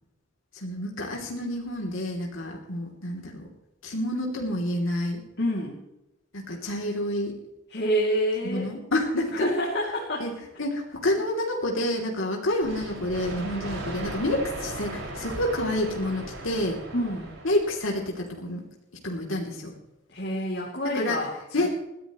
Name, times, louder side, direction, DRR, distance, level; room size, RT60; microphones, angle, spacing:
voice 1, 0.5-3.5 3.8-5.2 6.3-7.3 8.4-9.5 10.2-10.3 10.6-16.8 17.4-18.6 19.0-19.7 20.9-21.2 21.5-21.7, left 1 dB, 80° left, -1 dB, 3.0 m, -28 dB
voice 2, 5.4-5.8 7.7-8.7 9.3-10.3 16.9-17.3 20.1-21.3 21.6-21.7, equal, 50° left, -2 dB, 2.8 m, -27 dB
sound 1, 12.6-18.2, right 1 dB, 80° right, 5.8 m, -37 dB
21.0 x 15.5 x 3.1 m, 0.96 s
head